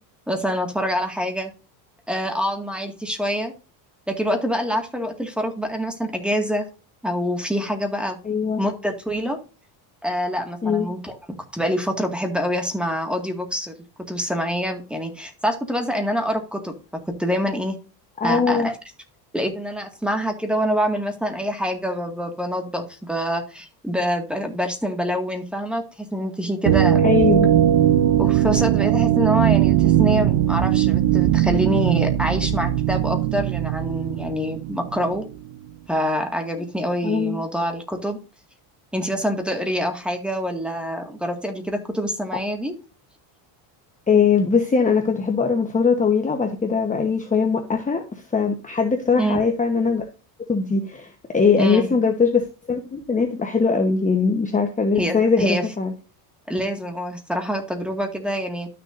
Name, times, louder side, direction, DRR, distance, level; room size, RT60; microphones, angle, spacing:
voice 1, 0.3-1.5 2.1-3.5 4.1-6.7 7.0-8.2 8.6-9.4 10.0-11.2 11.5-13.7 14.1-16.7 17.2-17.8 18.2-18.7 19.3-27.0 28.2-35.2 35.9-38.2 38.9-42.7 49.2-49.4 51.6-51.9 55.0-55.6 56.5-58.7, equal, ahead, 4 dB, 2.0 m, -25 dB
voice 2, 8.2-8.6 10.6-10.9 18.2-18.7 27.0-27.5 36.6-36.7 37.0-37.4 44.1-50.0 50.5-52.4 52.7-55.9, left 5 dB, 15° left, 4 dB, 1.1 m, -21 dB
sound 1, 26.7-35.3, right 12 dB, 60° right, 0.9 m, -19 dB
12.0 x 6.8 x 2.6 m, 0.34 s
cardioid pair, 120°, 50 cm